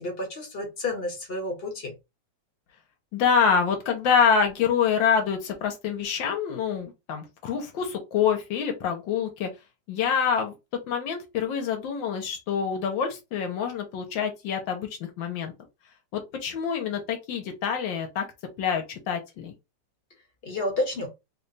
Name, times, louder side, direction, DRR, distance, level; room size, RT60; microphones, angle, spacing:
voice 1, 0.0-1.9 20.4-21.1, left 1 dB, 40° left, 1.0 m, -30 dB
voice 2, 3.1-9.5 9.9-10.5 10.9-15.5 16.1-18.2 18.6-19.5, left 7 dB, 85° left, 1.5 m, -26 dB
3.4 x 2.3 x 3.9 m
omnidirectional pair, 2.0 m